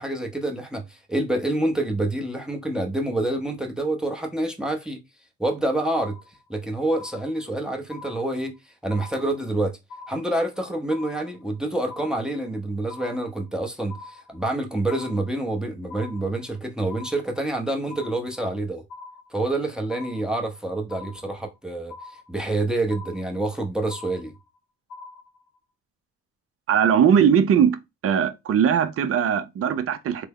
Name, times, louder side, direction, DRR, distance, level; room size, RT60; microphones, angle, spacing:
voice 1, 0.0-5.0 5.4-6.2 6.5-9.8 10.1-18.8 19.3-24.4, right 2 dB, ahead, 0.7 m, -27 dB
sound 1, 5.9-6.6 6.9-7.6 7.9-8.6 8.9-9.6 9.9-10.6 10.9-11.6 11.9-12.6 12.9-13.6 13.9-14.6 14.9-15.6 15.9-16.6 16.9-17.6 17.9-18.6 18.9-19.6 19.9-20.6 20.9-21.6 21.9-22.6 22.9-23.6 23.9-24.6 24.9-25.6, left 3 dB, 85° left, 0.9 m, -43 dB
voice 2, 26.7-27.8 28.0-30.3, right 8 dB, 50° right, 0.5 m, -20 dB
3.3 x 2.1 x 3.5 m
cardioid pair, 90°, 30 cm